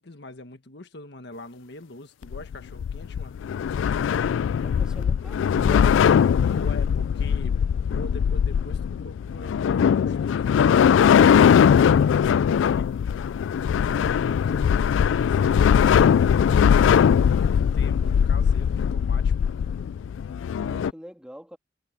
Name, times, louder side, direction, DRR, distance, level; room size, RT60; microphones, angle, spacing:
voice 1, 0.0-3.4 6.5-7.5 7.9-12.9 14.3-19.5, left 2 dB, 65° left, 1.5 m, -42 dB
sound 1, 2.2-20.9, left 7 dB, 85° left, 0.3 m, -20 dB
voice 2, 4.6-6.0 13.8-14.2 20.5-21.6, equal, 5° right, 2.5 m, -43 dB
head